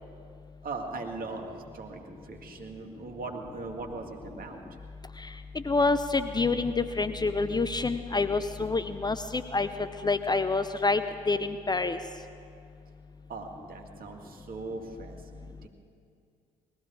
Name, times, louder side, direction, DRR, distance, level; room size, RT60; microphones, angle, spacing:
voice 1, 0.6-4.6 13.3-15.7, right 3 dB, 45° right, 2 dB, 2.3 m, -39 dB
voice 2, 5.5-9.7 10.0-11.0 11.3-12.0, left 3 dB, 20° left, 11 dB, 0.7 m, -27 dB
20.0 x 14.5 x 4.8 m, 2.3 s
hypercardioid pair, 50°, 20 cm